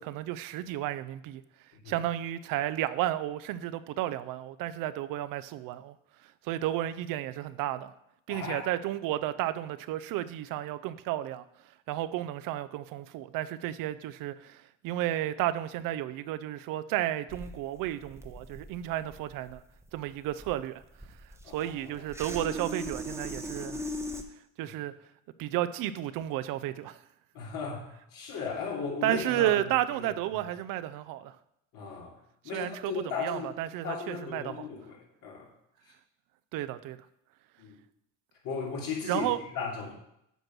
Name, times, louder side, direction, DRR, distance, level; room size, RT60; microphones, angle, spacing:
voice 1, 0.0-1.4 1.9-5.9 6.4-7.9 8.3-11.4 11.9-19.6 19.9-20.8 21.5-23.8 24.6-24.9 25.4-27.0 29.0-31.4 32.5-34.5 36.5-37.0 39.0-39.4, right 13 dB, 70° right, 0.6 m, -32 dB
voice 2, 8.3-8.7 21.4-22.1 24.6-24.7 27.3-29.6 30.0-30.1 31.7-32.2 32.4-33.5 33.8-35.5 37.6-37.7 38.4-39.3 39.5-39.9, left 5 dB, 70° left, 2.8 m, -36 dB
sound 1, 17.3-24.2, equal, 10° right, 0.8 m, -40 dB
8.1 x 4.5 x 6.1 m
supercardioid pair, 95°, 35 cm